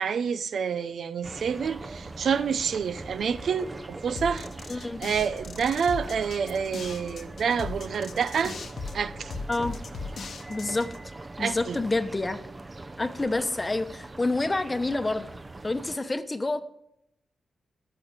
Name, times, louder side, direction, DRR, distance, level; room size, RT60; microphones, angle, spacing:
voice 1, 0.0-8.6 8.9-9.3 11.4-11.8, right 6 dB, 70° right, 0.7 m, -28 dB
sound 1, 1.2-16.0, right 2 dB, 25° right, 0.7 m, -42 dB
sound 2, 4.2-11.0, left 4 dB, 65° left, 1.1 m, -38 dB
voice 2, 4.7-5.0 9.5-9.8 10.5-10.9 11.4-12.4 13.0-15.3 15.6-16.6, left 2 dB, 20° left, 1.0 m, -28 dB
14.0 x 7.0 x 9.6 m
cardioid pair, 95°, 0 cm